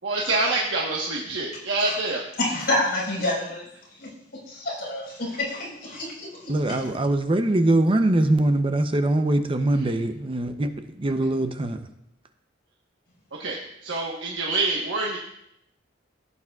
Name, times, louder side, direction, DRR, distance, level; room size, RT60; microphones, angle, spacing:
voice 1, 0.0-2.2 13.3-15.2, right 3 dB, 75° right, -2 dB, 1.2 m, -26 dB
voice 2, 2.4-3.6 4.0-4.1 4.5-6.7, left 1 dB, 55° left, -5 dB, 4.4 m, -28 dB
voice 3, 6.5-11.8, right 1 dB, 30° right, 8 dB, 0.6 m, -22 dB
16.5 x 8.3 x 2.4 m, 0.79 s
head